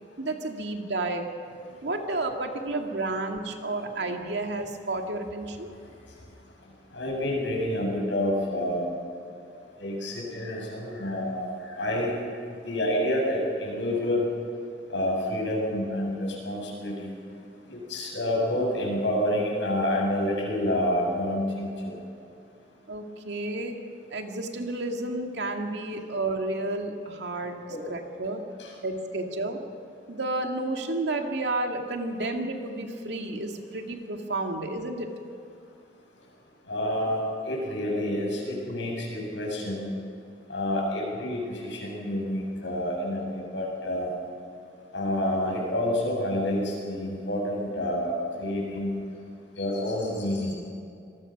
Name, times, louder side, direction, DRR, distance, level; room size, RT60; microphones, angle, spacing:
voice 1, 0.2-1.4 1.8-5.7 22.9-23.8 24.1-27.6 27.9-28.4 28.8-29.6 30.1-35.1, right 2 dB, 70° right, 3 dB, 2.2 m, -31 dB
voice 2, 6.9-9.0 9.8-12.2 12.5-14.3 14.9-17.1 17.7-22.0 27.7-27.9 28.6-28.7 36.7-39.9 40.5-44.1 44.9-48.9 49.5-50.5, left 1 dB, 85° left, -2 dB, 7.1 m, -28 dB
26.5 x 20.0 x 6.0 m, 2.5 s
head